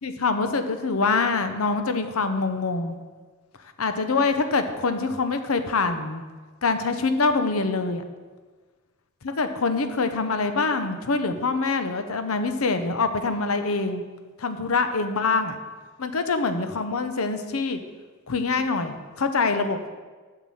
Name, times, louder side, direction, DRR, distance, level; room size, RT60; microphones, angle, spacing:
voice 1, 0.0-3.0 3.8-6.2 6.6-8.0 9.2-14.0 14.4-15.6 16.0-17.8 18.3-19.9, left 4 dB, 75° left, 8 dB, 0.8 m, -25 dB
7.4 x 5.9 x 7.2 m, 1.4 s
head